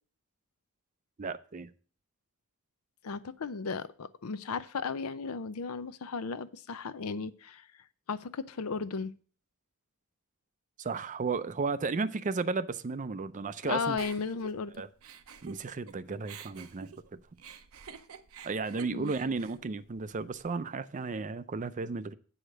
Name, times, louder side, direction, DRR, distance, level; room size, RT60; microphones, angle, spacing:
voice 1, 1.2-1.7 10.8-14.0 14.8-14.9 15.4-17.2 18.4-22.1, right 4 dB, 35° right, 0.5 m, -34 dB
voice 2, 3.0-7.7 8.1-9.1 13.6-14.7 18.9-19.1, left 5 dB, 80° left, 0.6 m, -35 dB
Giggle, 14.0-15.9 16.2-20.5, right 5 dB, 70° right, 0.7 m, -48 dB
8.7 x 5.0 x 6.4 m
head